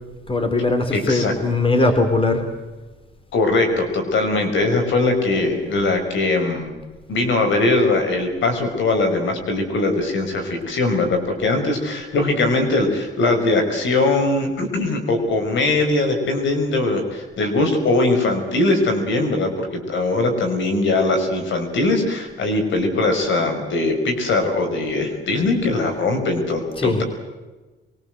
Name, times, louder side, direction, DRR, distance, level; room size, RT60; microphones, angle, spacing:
voice 1, 0.3-2.4 26.8-27.0, left 2 dB, 25° left, 7 dB, 4.3 m, -20 dB
voice 2, 0.9-1.3 3.3-6.7 7.1-27.0, left 2 dB, 70° left, 5 dB, 5.7 m, -21 dB
24.0 x 23.5 x 7.9 m, 1.2 s
cardioid pair, 90°, 20 cm